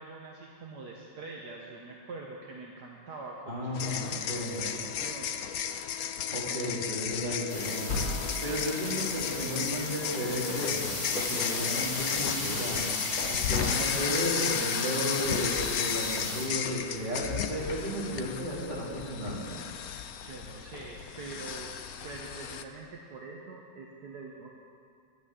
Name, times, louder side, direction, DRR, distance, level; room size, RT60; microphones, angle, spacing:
voice 1, 0.0-5.5 13.5-14.7 20.2-21.8 22.0-24.6, right 3 dB, 65° right, -2 dB, 1.7 m, -44 dB
voice 2, 3.5-4.7 6.3-8.1 8.4-12.9 13.3-19.5, equal, 25° right, -6 dB, 3.4 m, -34 dB
sound 1, 3.7-22.6, left 8 dB, 65° left, 1.0 m, -34 dB
sound 2, 7.5-16.5, left 2 dB, 45° left, 2.4 m, -35 dB
11.5 x 9.0 x 9.8 m, 2.3 s
omnidirectional pair, 1.9 m